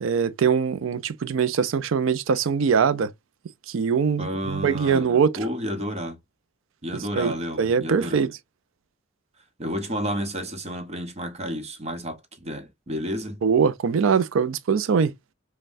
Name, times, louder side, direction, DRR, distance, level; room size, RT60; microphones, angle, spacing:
voice 1, 0.0-3.1 3.7-5.4 7.2-8.4 13.4-15.1, right 6 dB, 70° right, 0.4 m, -22 dB
voice 2, 4.2-5.0 5.4-6.2 6.8-8.2 9.6-13.4, equal, 35° right, 0.9 m, -31 dB
5.4 x 2.2 x 2.5 m
head